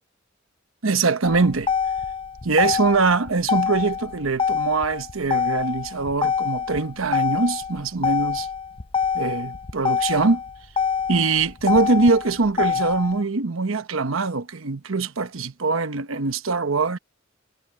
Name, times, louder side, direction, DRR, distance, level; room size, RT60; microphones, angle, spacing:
voice 1, 0.8-1.7 2.4-8.5 9.1-10.4 11.1-17.0, right 4 dB, 85° right, 1.0 m, -22 dB
Motor vehicle (road), 1.2-13.2, left 6 dB, 25° left, 0.5 m, -26 dB
head